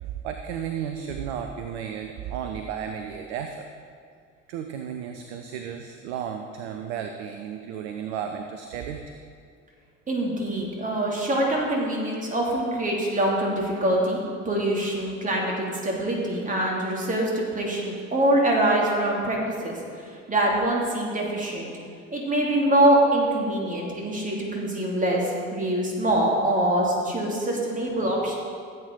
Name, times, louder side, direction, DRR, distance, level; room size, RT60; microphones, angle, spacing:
voice 1, 0.0-3.7 4.5-9.1, right 8 dB, 60° right, 5 dB, 0.8 m, -33 dB
voice 2, 10.1-14.2 14.4-21.7 22.1-28.4, right 1 dB, 20° right, -2 dB, 2.6 m, -24 dB
15.0 x 8.1 x 3.8 m, 2.2 s
figure-of-eight pair, 65°, 37 cm